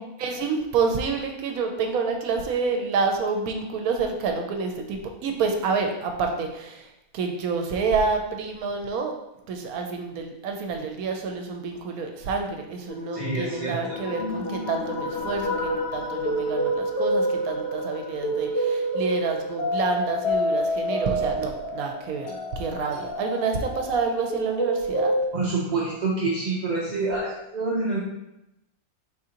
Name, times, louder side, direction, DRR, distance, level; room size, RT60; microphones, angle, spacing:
voice 1, 0.2-6.9 7.1-9.1 9.5-22.3 22.5-25.1, right 4 dB, 85° right, 4 dB, 1.1 m, -28 dB
sound 1, 12.9-25.2, equal, 55° left, 0.9 m, -28 dB
voice 2, 13.1-13.8 25.3-28.0, right 3 dB, 45° right, -5 dB, 0.5 m, -27 dB
4.7 x 3.7 x 2.8 m, 0.88 s
omnidirectional pair, 1.5 m